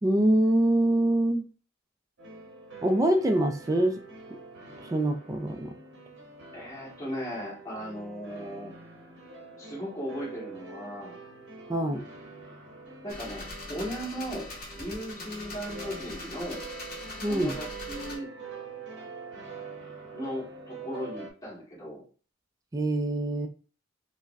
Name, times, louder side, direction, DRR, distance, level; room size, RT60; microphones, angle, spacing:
voice 1, 0.0-1.5 2.8-4.0 4.8-5.7 11.7-12.0 17.2-17.5 22.7-23.5, right 1 dB, 15° right, 6 dB, 0.3 m, -24 dB
sound 1, 2.2-21.3, right 3 dB, 55° right, 0.8 m, -45 dB
voice 2, 6.5-8.7 9.6-11.2 13.0-14.5 14.7-16.6 17.3-18.3 20.1-22.0, equal, 20° left, -6 dB, 1.6 m, -37 dB
sound 2, 13.1-18.2, left 2 dB, 45° left, 0.9 m, -41 dB
4.9 x 2.1 x 2.4 m, 0.39 s
head